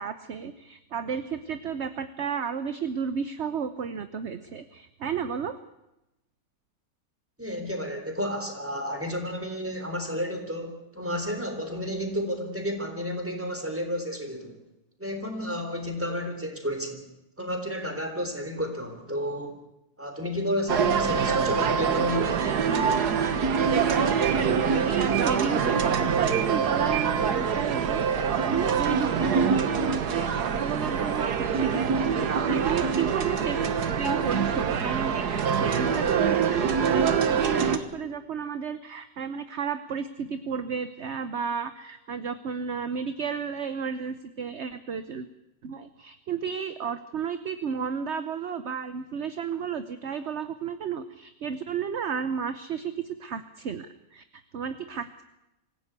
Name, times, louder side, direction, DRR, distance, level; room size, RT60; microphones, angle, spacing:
voice 1, 0.0-5.6 24.0-33.6 34.0-45.3 45.6-54.2 54.5-55.2, right 7 dB, 50° right, 11 dB, 1.1 m, -33 dB
voice 2, 7.4-14.6 15.0-17.0 17.4-19.6 20.0-22.4, equal, 10° right, 5 dB, 3.7 m, -31 dB
sound 1, 20.7-37.8, right 6 dB, 80° right, 1.9 m, -25 dB
25.5 x 16.0 x 8.1 m, 0.91 s
omnidirectional pair, 1.7 m